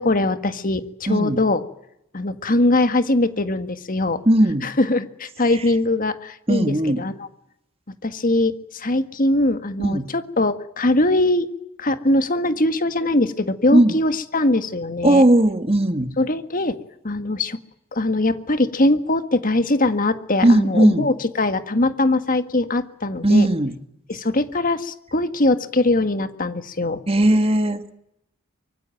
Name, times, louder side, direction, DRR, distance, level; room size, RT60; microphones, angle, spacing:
voice 1, 0.0-1.6 2.1-4.2 4.6-7.3 8.0-11.5 11.8-15.2 16.2-16.8 17.0-17.6 17.9-23.5 24.1-27.0, left 2 dB, 40° left, 10 dB, 1.7 m, -21 dB
voice 2, 1.1-1.4 4.3-4.7 6.5-7.0 9.8-10.1 13.7-14.0 15.0-16.2 20.4-21.1 23.2-23.7 27.1-27.8, right 1 dB, 25° right, 9 dB, 1.8 m, -17 dB
25.0 x 24.0 x 9.2 m, 0.79 s
head